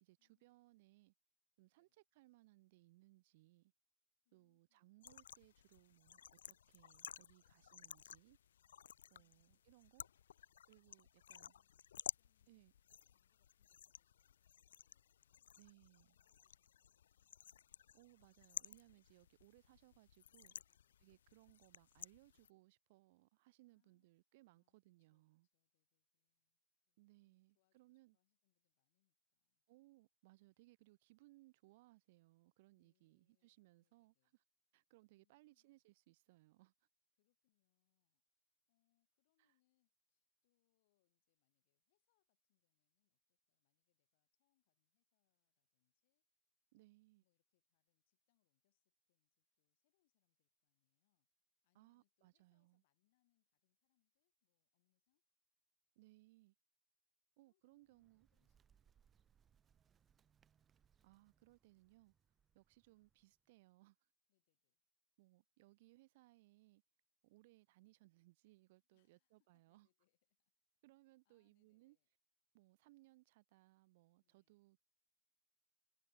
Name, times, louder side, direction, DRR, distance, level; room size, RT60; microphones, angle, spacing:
voice 1, 0.0-1.1 1.6-3.7 4.3-6.2 6.5-8.4 9.1-10.1 10.7-11.5 12.5-12.7 15.6-16.2 17.9-20.5 21.0-25.5 27.0-28.2 29.7-34.1 34.7-36.7 39.4-39.5 46.7-47.2 51.7-52.8 56.0-56.5 57.4-58.3 61.0-62.1 62.5-64.0 65.2-66.8 67.2-69.9 70.8-72.0 72.5-74.8, right 20 dB, 50° right, 0.6 m, -68 dB
voice 2, 4.2-4.9 7.4-7.7 9.1-10.3 11.0-15.6 16.1-17.5 20.5-21.0 23.6-29.6 32.7-34.4 35.1-35.8 37.2-46.3 46.7-46.9 47.2-51.3 51.6-55.2 57.4-60.3 64.3-64.8 68.8-70.5 71.1-72.1 74.2-74.6, left 20 dB, 50° left, 6.6 m, -91 dB
sound 1, 5.0-22.5, left 9 dB, 85° left, 0.3 m, -54 dB
Bird, 57.7-63.5, right 8 dB, 20° right, 2.6 m, -77 dB
hypercardioid pair, 145°, 0 cm